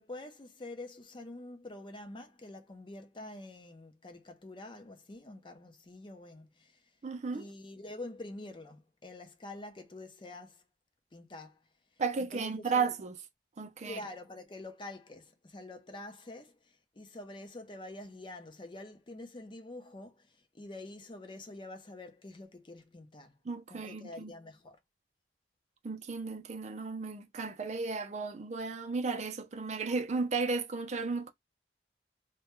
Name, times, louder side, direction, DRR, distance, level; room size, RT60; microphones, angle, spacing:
voice 1, 0.0-6.8 7.3-10.6 11.1-11.6 12.2-13.0 13.9-23.4 23.7-24.8, left 2 dB, 30° left, 0.5 m, -46 dB
voice 2, 7.0-7.5 12.0-13.2 13.6-14.0 23.4-24.3 25.8-31.3, right 4 dB, 40° right, 0.4 m, -34 dB
2.2 x 2.2 x 2.9 m
head